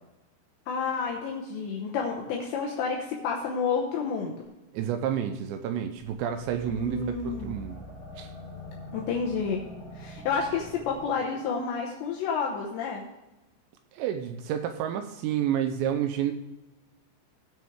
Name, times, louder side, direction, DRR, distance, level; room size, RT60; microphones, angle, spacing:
voice 1, 0.7-4.5 6.7-7.5 8.9-9.6 9.9-13.0, left 5 dB, 75° left, 0 dB, 2.9 m, -30 dB
voice 2, 4.7-7.8 8.2-8.3 13.9-16.3, right 9 dB, 85° right, 6 dB, 2.5 m, -30 dB
sound 1, 5.9-11.5, equal, 30° left, 1.6 m, -44 dB
17.0 x 6.2 x 3.6 m, 1.0 s
omnidirectional pair, 5.7 m